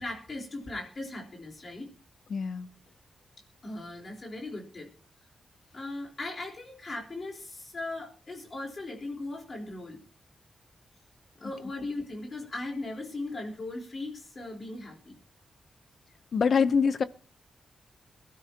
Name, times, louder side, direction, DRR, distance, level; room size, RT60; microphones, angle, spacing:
voice 1, 0.0-1.9 3.6-4.9 5.7-10.0 11.4-15.1, left 2 dB, 30° left, 4.1 m, -38 dB
voice 2, 2.3-2.7 16.3-17.0, left 6 dB, 50° left, 0.8 m, -24 dB
22.5 x 13.0 x 2.9 m
wide cardioid pair, 175°, 0 cm